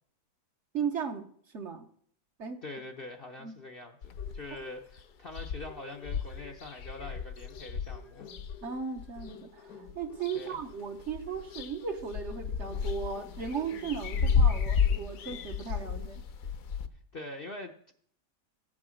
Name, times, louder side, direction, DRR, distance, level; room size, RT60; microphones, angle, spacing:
voice 1, 0.7-1.3 1.5-1.9 2.4-2.6 3.4-3.6 8.6-16.2, right 6 dB, 50° right, 6 dB, 1.1 m, -36 dB
voice 2, 2.6-8.3 10.3-10.6 17.1-17.9, left 2 dB, 45° left, 3 dB, 0.8 m, -44 dB
sound 1, 4.0-4.6 5.0-5.1 5.3-9.3 9.9-10.7 11.0-16.9, left 6 dB, 65° left, 1.2 m, -32 dB
sound 2, 4.2-5.2 5.5-16.2, left 5 dB, 85° left, 2.1 m, -52 dB
14.5 x 8.7 x 6.3 m, 0.64 s
omnidirectional pair, 1.7 m